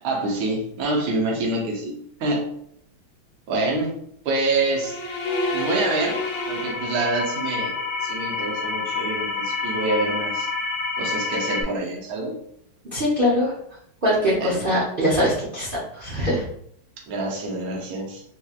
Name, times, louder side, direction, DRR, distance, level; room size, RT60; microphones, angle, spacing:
voice 1, 0.0-2.5 3.5-4.0 4.2-5.0 5.5-6.2 6.5-10.5 11.0-12.4 14.4-14.6 17.1-18.2, right 2 dB, 55° right, -1 dB, 1.1 m, -26 dB
sound 1, 4.5-7.5, left 1 dB, 75° left, 1.4 m, -31 dB
sound 2, 5.2-11.6, left 4 dB, 90° left, 0.6 m, -28 dB
voice 2, 12.9-13.5 14.0-16.5, equal, 80° right, -7 dB, 0.4 m, -22 dB
3.6 x 3.0 x 2.4 m, 0.69 s
omnidirectional pair, 2.2 m